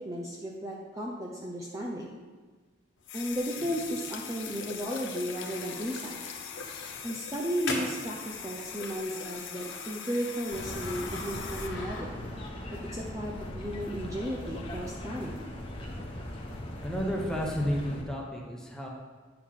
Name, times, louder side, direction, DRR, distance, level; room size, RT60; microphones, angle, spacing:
voice 1, 0.0-2.2 3.1-6.2 7.0-12.2 12.9-15.4, equal, 20° right, -3 dB, 0.7 m, -34 dB
sound 1, 3.0-11.7, left 7 dB, 85° left, 0.8 m, -41 dB
sound 2, 3.6-12.4, left 2 dB, 70° left, 1.7 m, -43 dB
sound 3, 10.5-18.0, left 1 dB, 30° left, 1.3 m, -39 dB
voice 2, 16.8-18.9, equal, 5° left, -2 dB, 1.1 m, -32 dB
9.0 x 6.8 x 3.8 m, 1.4 s
head